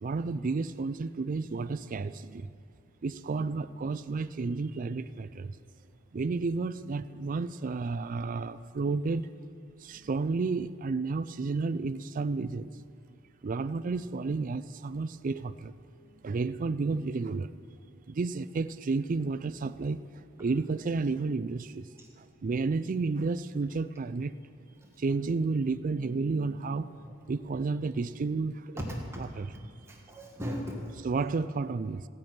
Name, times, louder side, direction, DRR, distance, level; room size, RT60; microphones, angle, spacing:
voice 1, 0.0-2.5 3.0-5.5 6.1-9.3 9.8-12.7 13.4-15.7 16.2-17.5 18.1-20.0 20.4-21.8 22.4-24.3 25.0-26.9 27.3-28.8 29.2-29.5 31.0-32.1, right 4 dB, 40° right, 14 dB, 0.4 m, -31 dB
voice 2, 28.8-29.6 29.9-30.9, equal, 15° right, -1 dB, 1.7 m, -38 dB
16.0 x 6.1 x 8.8 m, 2.5 s
head